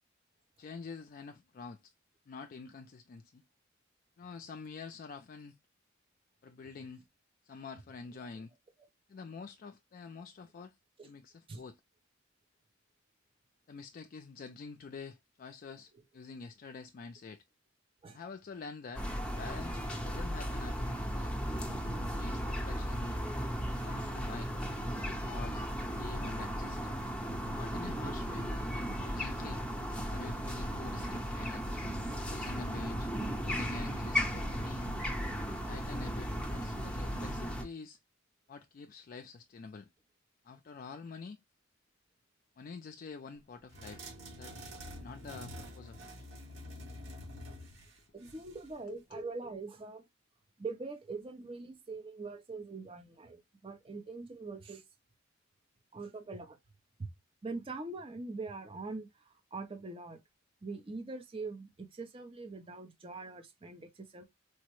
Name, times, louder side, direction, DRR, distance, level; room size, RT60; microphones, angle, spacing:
voice 1, 0.6-1.9 2.3-3.4 4.2-5.5 6.4-7.0 7.4-8.5 9.1-10.7 11.0-11.7 13.7-17.4 18.1-21.3 22.2-23.2 23.8-24.5 25.0-26.8 27.5-28.5 29.0-29.6 30.1-31.6 32.3-33.1 33.4-34.9 35.7-38.0 38.5-39.9 40.4-41.4 42.6-44.1 44.3-44.5 44.8-46.1 48.9-49.2, left 4 dB, 45° left, 0.3 m, -47 dB
sound 1, 18.9-37.6, equal, 5° left, 0.8 m, -36 dB
sound 2, 43.7-48.8, equal, 70° right, 2.0 m, -47 dB
voice 2, 48.1-50.0 50.6-54.8 55.9-56.6 57.0-57.1 57.4-60.2 60.6-64.2, right 3 dB, 25° right, 0.5 m, -43 dB
4.4 x 2.1 x 3.0 m
head